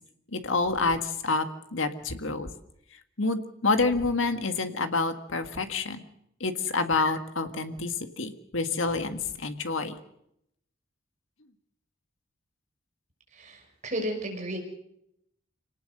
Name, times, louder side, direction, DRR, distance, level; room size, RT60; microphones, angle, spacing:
voice 1, 0.3-2.5 3.2-6.0 6.4-9.9, left 3 dB, 75° left, 8 dB, 1.8 m, -28 dB
voice 2, 13.3-14.6, right 1 dB, 35° right, 2 dB, 5.8 m, -33 dB
26.0 x 18.5 x 6.7 m, 0.76 s
head